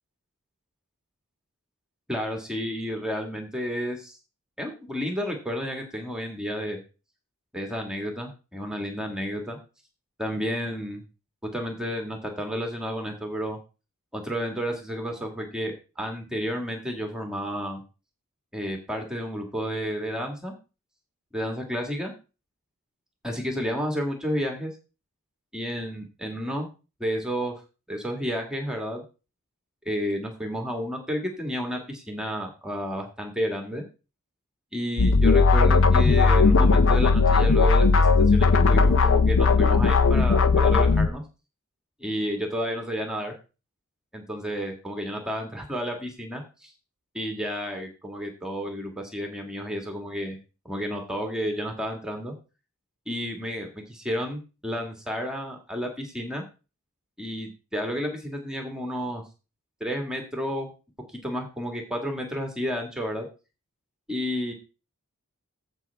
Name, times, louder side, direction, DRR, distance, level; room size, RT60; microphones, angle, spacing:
voice 1, 2.1-4.2 4.6-6.8 7.5-9.6 10.2-11.0 11.5-13.6 14.1-17.8 18.5-20.5 21.3-22.1 23.2-24.7 25.5-26.7 27.0-27.5 27.9-29.0 29.8-33.8 34.7-41.2 42.0-43.4 44.1-46.7 47.1-50.4 50.6-52.3 53.1-56.4 57.2-59.2 59.8-60.7 61.2-63.3 64.1-64.5, equal, 5° right, 2 dB, 1.7 m, -31 dB
sound 1, 35.0-41.1, left 4 dB, 60° left, 0.7 m, -18 dB
15.0 x 5.3 x 3.4 m, 0.32 s
head